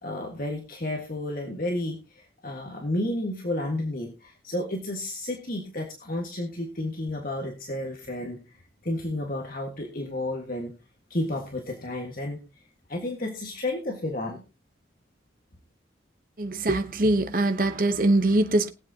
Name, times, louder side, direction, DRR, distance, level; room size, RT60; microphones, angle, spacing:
voice 1, 0.0-8.4 8.8-10.7 11.1-12.4 12.9-14.4, left 1 dB, 50° left, 1.7 m, -31 dB
voice 2, 16.4-18.7, right 2 dB, 45° right, 0.9 m, -23 dB
21.5 x 7.9 x 2.8 m
head